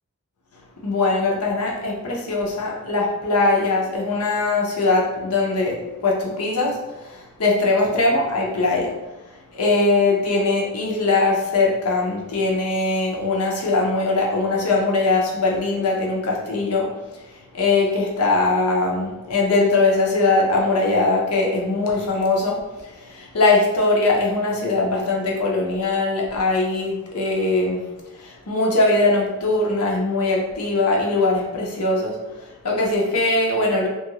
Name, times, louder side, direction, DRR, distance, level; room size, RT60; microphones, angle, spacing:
voice 1, 0.8-8.9 9.3-27.8 28.1-33.9, left 3 dB, 85° left, -1 dB, 0.7 m, -21 dB
2.7 x 2.5 x 2.9 m, 1.0 s
head